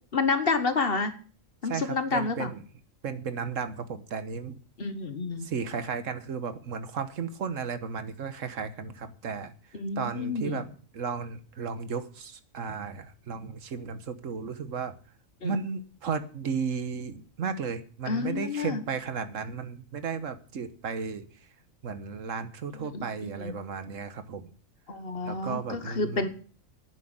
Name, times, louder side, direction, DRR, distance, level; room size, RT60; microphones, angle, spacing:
voice 1, 0.1-1.1 1.6-2.5 4.8-5.5 9.8-10.6 15.4-15.5 18.1-18.8 22.9-23.1 23.4-23.5 24.9-26.3, left 4 dB, 45° left, 10 dB, 1.3 m, -29 dB
voice 2, 1.6-2.6 3.0-4.6 5.4-10.7 10.9-14.9 15.4-21.5 21.8-24.5 25.2-26.3, right 6 dB, 70° right, 11 dB, 1.5 m, -34 dB
9.9 x 7.8 x 8.8 m, 0.42 s
omnidirectional pair, 1.4 m